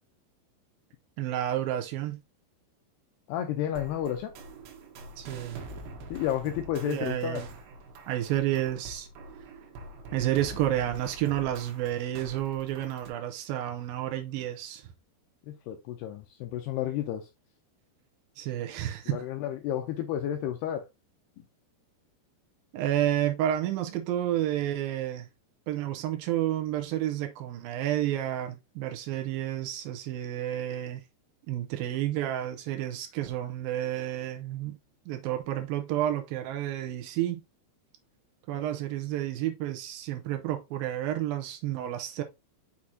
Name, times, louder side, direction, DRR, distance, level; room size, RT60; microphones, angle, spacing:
voice 1, 1.2-2.2 5.2-5.6 6.8-7.5 8.1-9.1 10.1-14.9 18.4-19.2 22.7-25.3 25.7-31.0 31.4-34.8 35.1-37.4 38.5-42.2, right 12 dB, 85° right, 2.0 m, -30 dB
voice 2, 3.3-4.3 6.1-7.4 15.5-17.3 19.1-20.9, left 11 dB, 80° left, 2.5 m, -31 dB
sound 1, 3.7-13.1, right 2 dB, 70° right, 2.7 m, -45 dB
6.3 x 6.1 x 2.7 m
omnidirectional pair, 5.1 m